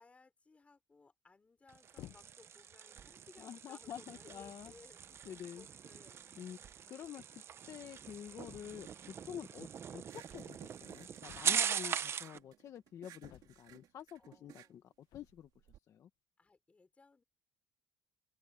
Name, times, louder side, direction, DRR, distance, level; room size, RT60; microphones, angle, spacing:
voice 1, 0.0-6.4 14.2-14.7 16.4-17.2, left 3 dB, 20° left, 4.5 m, -62 dB
sound 1, 1.7-12.4, right 8 dB, 35° right, 0.8 m, -41 dB
sound 2, 2.0-2.6 3.3-3.5 4.3-4.4 4.6-5.0 6.2-6.3 6.5-6.6 6.8-6.9 8.4-9.0 11.3-11.9 13.2-13.9 15.0-15.5, left 14 dB, 65° left, 1.0 m, -56 dB
voice 2, 3.4-4.7 5.2-5.6 6.4-6.6 6.9-9.7 9.9-15.5 15.9-16.1, left 9 dB, 45° left, 1.3 m, -48 dB
sound 3, 10.0-15.8, right 12 dB, 65° right, 2.4 m, -58 dB
open air
cardioid pair, 140°, 7 cm